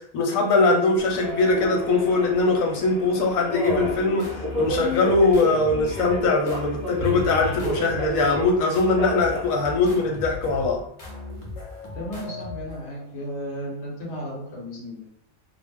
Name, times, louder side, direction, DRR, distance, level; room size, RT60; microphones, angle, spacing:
voice 1, 0.1-4.2 4.6-10.8, left 3 dB, 90° left, 1 dB, 1.1 m, -21 dB
Subway metro underground, 1.0-10.7, left 1 dB, 15° left, 0.9 m, -32 dB
sound 1, 3.6-13.1, left 2 dB, 45° left, 0.4 m, -38 dB
sound 2, 7.0-9.0, left 2 dB, 60° right, 0.7 m, -34 dB
voice 2, 11.9-15.1, equal, 60° left, -3 dB, 1.0 m, -34 dB
2.3 x 2.1 x 3.3 m, 0.70 s
omnidirectional pair, 1.4 m